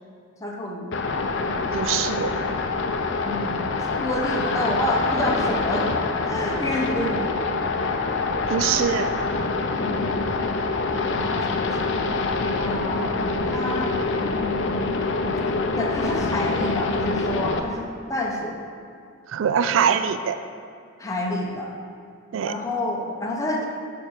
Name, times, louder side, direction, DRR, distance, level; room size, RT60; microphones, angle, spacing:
voice 1, 0.4-1.0 3.2-5.9 6.2-7.6 9.7-10.3 11.1-12.0 12.5-15.0 15.5-18.7 21.0-21.7 22.4-23.6, left 1 dB, 15° left, -2 dB, 0.6 m, -29 dB
sound 1, 0.9-17.6, left 3 dB, 60° left, 0.5 m, -25 dB
voice 2, 1.7-2.3 8.5-9.1 19.3-20.4 22.3-22.5, right 7 dB, 70° right, 10 dB, 0.3 m, -23 dB
6.6 x 5.2 x 4.4 m, 2.3 s
head